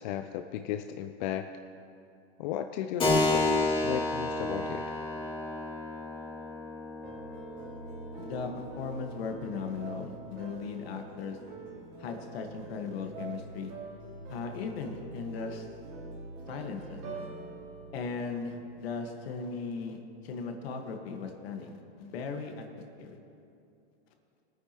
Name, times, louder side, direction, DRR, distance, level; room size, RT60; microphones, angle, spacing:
voice 1, 0.0-1.5 2.4-3.5 3.8-4.9, left 11 dB, 45° left, 8 dB, 0.4 m, -35 dB
Keyboard (musical), 3.0-11.2, left 2 dB, 15° left, 2.1 m, -32 dB
sound 1, 7.0-19.2, right 3 dB, 40° right, 2.5 m, -45 dB
voice 2, 8.2-11.4 12.0-13.7 14.3-15.7 16.5-17.3 17.9-22.7 23.0-23.2, left 5 dB, 65° left, 4 dB, 1.5 m, -37 dB
21.0 x 9.3 x 3.0 m, 2.7 s
hypercardioid pair, 140°, 33 cm